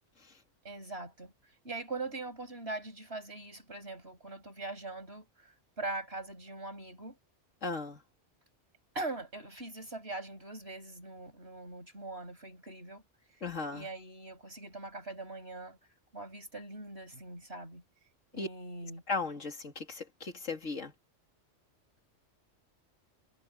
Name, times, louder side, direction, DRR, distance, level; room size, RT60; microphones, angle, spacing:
voice 1, 0.6-1.3 1.6-7.2 9.0-13.0 13.3-13.4 13.7-15.8 16.1-17.8 18.3-19.0, right 2 dB, 55° right, 7.1 m, -42 dB
voice 2, 7.6-8.0 13.4-13.9 18.4-18.5 19.1-20.9, left 4 dB, 90° left, 3.0 m, -36 dB
omnidirectional pair, 1.3 m